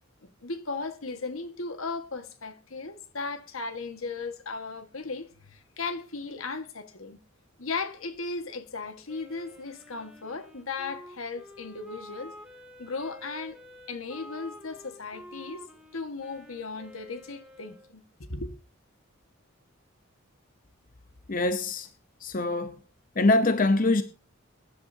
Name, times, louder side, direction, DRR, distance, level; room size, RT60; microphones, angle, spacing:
voice 1, 0.4-7.2 7.6-12.3 12.8-13.6 13.9-15.6 15.9-18.5, left 4 dB, 80° left, 1.7 m, -36 dB
Wind instrument woodwind instrument, 9.1-17.9, left 1 dB, 5° right, 2.3 m, -49 dB
voice 2, 21.3-21.9 22.2-22.8 23.2-24.0, left 2 dB, 40° left, 0.8 m, -23 dB
22.5 x 11.0 x 2.8 m
head